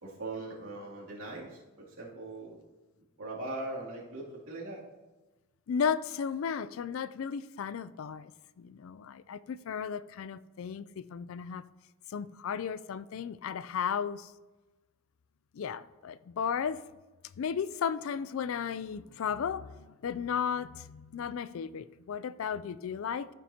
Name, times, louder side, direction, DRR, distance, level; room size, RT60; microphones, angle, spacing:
voice 1, 0.0-2.6 3.2-4.8, right 2 dB, 65° right, -5 dB, 2.7 m, -40 dB
voice 2, 5.7-8.3 8.6-11.7 12.1-14.3 15.5-16.8 17.4-23.3, left 7 dB, 65° left, 16 dB, 0.3 m, -34 dB
13.5 x 6.0 x 2.8 m, 1.2 s
head